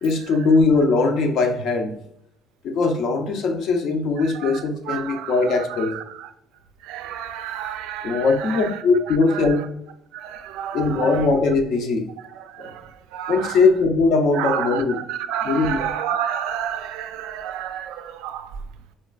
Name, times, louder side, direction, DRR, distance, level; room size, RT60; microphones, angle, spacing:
voice 1, 0.0-1.9 2.6-5.9 8.0-9.7 10.7-12.1 12.6-12.7 13.3-15.0 15.4-15.9, left 3 dB, 60° left, 0.6 m, -20 dB
voice 2, 4.4-6.3 6.8-8.7 9.3-9.5 10.1-11.3 12.5-12.8 13.1-13.6 14.4-18.5, right 9 dB, 85° right, 0.3 m, -30 dB
4.2 x 2.3 x 2.3 m
cardioid pair, 125°, 0 cm